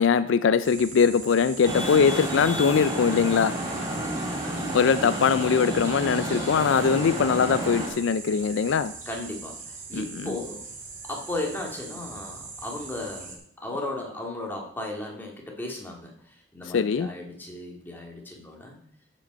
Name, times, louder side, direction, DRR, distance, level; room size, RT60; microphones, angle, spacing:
voice 1, 0.0-3.5 4.7-8.9 9.9-10.3 16.7-17.1, left 6 dB, 70° left, 14 dB, 0.4 m, -22 dB
sound 1, 0.6-13.4, right 4 dB, 40° right, 2.4 m, -41 dB
Traffic noise roadway noise, 1.6-7.9, right 1 dB, 20° right, 3.0 m, -31 dB
voice 2, 4.4-5.1 9.1-9.6 9.9-10.6 11.0-16.1 16.5-18.8, left 2 dB, 10° left, -1 dB, 2.0 m, -35 dB
14.0 x 5.2 x 5.2 m, 0.64 s
head